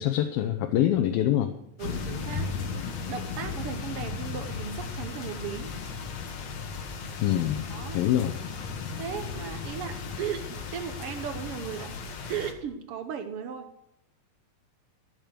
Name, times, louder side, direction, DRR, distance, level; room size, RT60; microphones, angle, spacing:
voice 1, 0.0-1.5 7.2-7.6 7.9-8.4, left 11 dB, 85° left, 6 dB, 2.7 m, -25 dB
sound 1, 1.8-12.5, left 5 dB, 55° left, 2.4 m, -36 dB
voice 2, 1.8-2.5 3.1-5.7 7.7-8.0 8.9-12.0 12.3-13.7, right 8 dB, 80° right, 7 dB, 1.3 m, -36 dB
14.0 x 9.3 x 6.6 m, 0.77 s
omnidirectional pair, 4.1 m